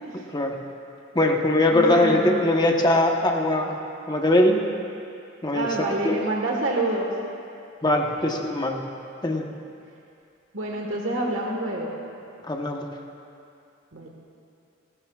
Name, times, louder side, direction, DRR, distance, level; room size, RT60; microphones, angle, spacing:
voice 1, 0.1-0.5 1.1-3.8 4.1-4.6 5.4-6.2 7.8-8.8 9.2-9.5 12.5-12.9, left 1 dB, 20° left, 1 dB, 1.0 m, -21 dB
voice 2, 1.7-2.4 5.5-7.1 10.5-11.9 13.9-14.1, right 2 dB, 75° right, -1 dB, 1.4 m, -27 dB
30.0 x 12.0 x 2.4 m, 2.6 s
head